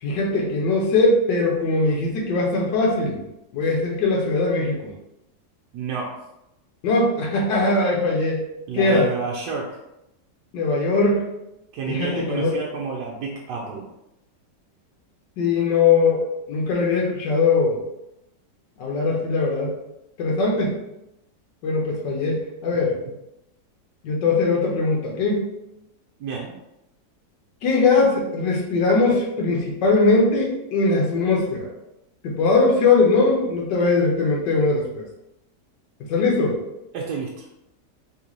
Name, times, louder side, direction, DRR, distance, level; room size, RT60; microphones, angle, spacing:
voice 1, 0.0-3.2 3.5-4.9 6.8-8.4 8.7-9.1 10.5-11.3 11.9-12.5 15.4-16.2 16.5-17.8 18.8-19.7 20.2-20.8 21.6-22.9 24.0-25.4 27.6-31.7 32.2-35.1 36.1-36.6, left 3 dB, 80° left, -2 dB, 1.5 m, -20 dB
voice 2, 5.7-6.2 8.7-9.7 11.7-13.8 26.2-26.5 36.9-37.4, right 4 dB, 75° right, -2 dB, 1.2 m, -29 dB
3.5 x 3.0 x 3.9 m, 0.88 s
omnidirectional pair, 1.9 m